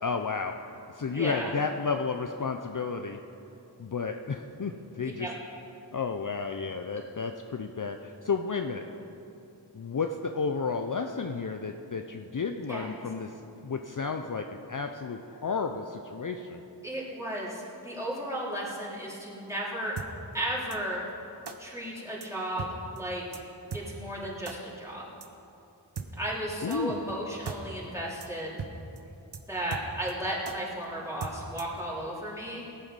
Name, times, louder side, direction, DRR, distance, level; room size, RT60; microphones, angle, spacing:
voice 1, 0.0-0.6 0.9-3.2 3.8-5.3 5.9-8.8 9.7-16.6 26.6-27.1, left 5 dB, 50° left, 5 dB, 0.6 m, -32 dB
voice 2, 1.1-1.5 5.0-5.3 12.7-12.9 16.8-19.9 20.3-21.0 21.6-23.4 23.7-25.0 26.2-28.6 29.5-32.6, right 1 dB, 5° right, -7 dB, 3.6 m, -34 dB
sound 1, 20.0-20.1 20.7-20.8 21.5-21.6 22.2-22.3 22.6-22.7 23.0-23.1 23.3-23.4 23.7-23.8 24.5-24.6 25.2-25.3 26.0-26.1 26.7-26.8 27.1-27.2 27.5-27.6 27.8-27.9 28.2-28.3 28.6-28.7 29.0-29.1 29.3-29.4 29.7-30.1 30.5-30.6 31.2-31.8, right 5 dB, 70° right, 0.9 m, -37 dB
17.0 x 9.1 x 5.3 m, 2.9 s
wide cardioid pair, 40°, 43 cm